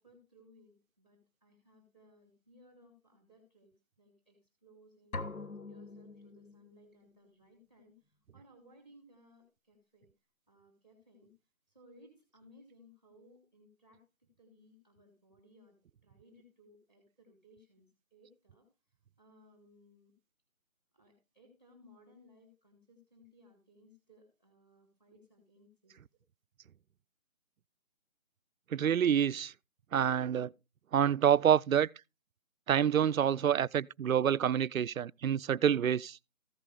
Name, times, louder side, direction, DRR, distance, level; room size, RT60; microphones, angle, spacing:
voice 1, 0.0-5.3 5.7-10.1 10.5-11.3 11.7-20.1 20.9-26.2, equal, 5° left, 1.8 m, -62 dB
sound 1, 5.1-6.9, left 3 dB, 85° left, 1.2 m, -43 dB
voice 2, 28.7-29.5 29.9-30.5 30.9-31.9 32.7-36.2, right 9 dB, 75° right, 0.5 m, -27 dB
14.5 x 5.4 x 4.8 m
figure-of-eight pair, 170°, 41 cm